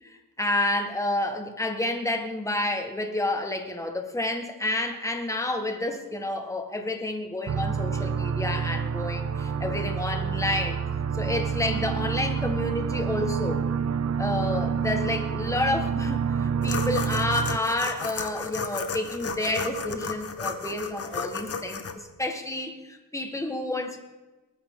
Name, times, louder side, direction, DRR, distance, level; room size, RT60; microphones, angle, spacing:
voice 1, 0.0-10.8 11.1-13.6 14.2-24.0, left 1 dB, 10° left, 5 dB, 1.5 m, -29 dB
sound 1, 7.5-17.6, right 6 dB, 50° right, 0.6 m, -28 dB
sound 2, 16.6-21.9, left 4 dB, 45° left, 1.2 m, -33 dB
19.0 x 14.5 x 3.7 m, 1.1 s
wide cardioid pair, 160°, 33 cm